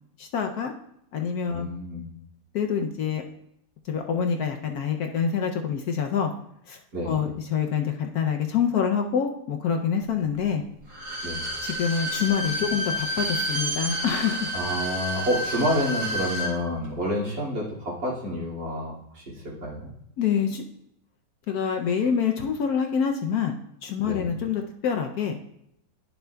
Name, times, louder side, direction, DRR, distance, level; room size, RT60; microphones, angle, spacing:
voice 1, 0.2-0.7 1.1-1.7 2.5-3.2 3.9-6.3 6.7-6.8 7.0-10.6 11.6-14.5 20.2-20.6 21.5-25.4, left 7 dB, 70° left, 4 dB, 1.0 m, -26 dB
voice 2, 1.5-2.1 6.9-7.2 11.2-11.4 14.5-19.9 24.0-24.3, equal, 75° right, -5 dB, 3.0 m, -29 dB
Bowed string instrument, 10.9-16.5 16.8-16.9, equal, 50° right, 2.3 m, -30 dB
10.5 x 6.7 x 2.2 m, 0.76 s
omnidirectional pair, 1.9 m